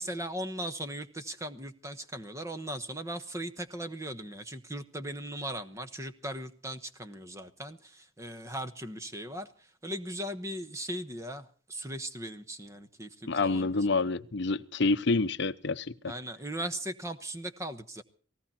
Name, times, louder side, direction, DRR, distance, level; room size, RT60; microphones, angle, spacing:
voice 1, 0.0-14.0 16.1-18.0, right 1 dB, 15° right, 9 dB, 1.1 m, -38 dB
voice 2, 13.3-15.9, left 3 dB, 60° left, 11 dB, 0.8 m, -27 dB
18.5 x 17.0 x 4.3 m, 0.42 s
head